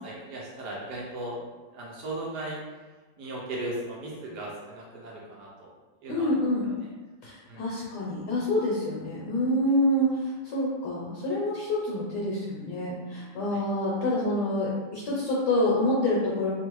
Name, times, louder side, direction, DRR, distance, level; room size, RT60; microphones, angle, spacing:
voice 1, 0.0-1.4 1.7-2.6 3.2-5.7 6.0-6.7 7.5-7.6 13.5-13.6, right 1 dB, 75° right, -4 dB, 1.1 m, -37 dB
voice 2, 6.1-6.7 7.2-16.5, left 1 dB, 70° left, -5 dB, 1.2 m, -27 dB
3.0 x 2.3 x 3.0 m, 1.3 s
omnidirectional pair, 2.0 m